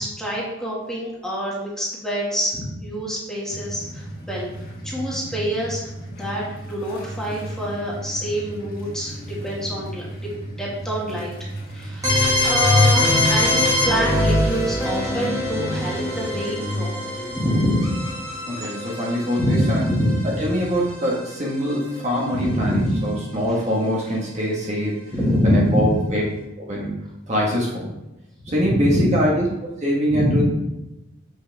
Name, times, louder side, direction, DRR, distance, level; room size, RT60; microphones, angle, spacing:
voice 1, 0.0-4.5 4.8-10.3 10.6-11.3 11.7-12.1 12.4-16.9 17.3-18.0 19.4-20.5 22.3-23.1 25.1-25.8 28.4-29.2 30.1-30.4, equal, 5° left, -5 dB, 1.8 m, -25 dB
sound 1, 3.5-16.5, right 1 dB, 45° left, 2.1 m, -35 dB
sound 2, 12.0-21.8, left 1 dB, 15° right, 1.5 m, -23 dB
voice 2, 18.5-19.8 20.4-25.0 25.4-26.2 26.6-26.9 27.3-27.9 28.4-29.4 29.8-30.4, equal, 35° right, -4 dB, 1.4 m, -23 dB
7.6 x 6.3 x 3.4 m, 0.95 s
head